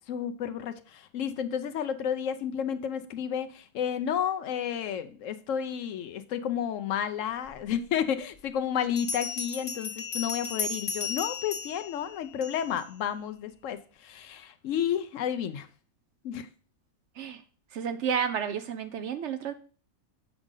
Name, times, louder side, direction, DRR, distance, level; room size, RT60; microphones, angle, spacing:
voice 1, 0.1-15.7 16.2-16.5, left 8 dB, 70° left, 10 dB, 0.9 m, -31 dB
Bell, 7.7-7.8 9.0-12.8, left 5 dB, 45° left, 1.2 m, -35 dB
voice 2, 17.7-19.5, right 7 dB, 65° right, 10 dB, 0.8 m, -31 dB
7.2 x 5.0 x 3.8 m, 0.40 s
omnidirectional pair, 1.4 m